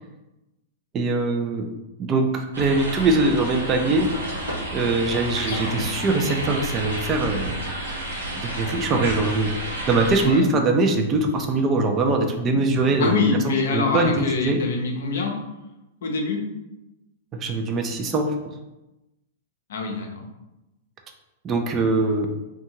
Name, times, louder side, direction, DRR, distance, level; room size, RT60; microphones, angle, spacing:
voice 1, 0.9-1.7 2.0-4.1 4.7-7.5 8.3-9.5 9.9-13.2 13.4-14.6 17.3-18.3 21.4-22.3, right 3 dB, 30° right, 4 dB, 0.4 m, -22 dB
sound 1, 2.5-10.3, right 1 dB, 85° right, 0.8 m, -30 dB
voice 2, 5.4-6.0 10.2-10.5 13.0-15.3 16.0-16.4 19.7-20.2, left 3 dB, 70° left, 2 dB, 0.6 m, -25 dB
2.6 x 2.2 x 2.9 m, 0.97 s
hypercardioid pair, 110°, 0 cm